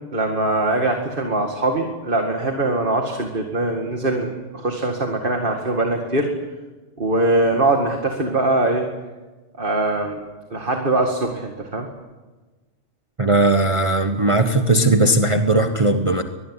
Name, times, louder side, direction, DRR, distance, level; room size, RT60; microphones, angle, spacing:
voice 1, 0.1-6.3 7.0-8.9 9.6-10.2 10.5-11.9, right 2 dB, 45° right, 3 dB, 2.4 m, -22 dB
voice 2, 13.2-16.2, right 2 dB, 25° right, 5 dB, 1.3 m, -18 dB
24.0 x 20.0 x 10.0 m, 1.3 s
omnidirectional pair, 1.2 m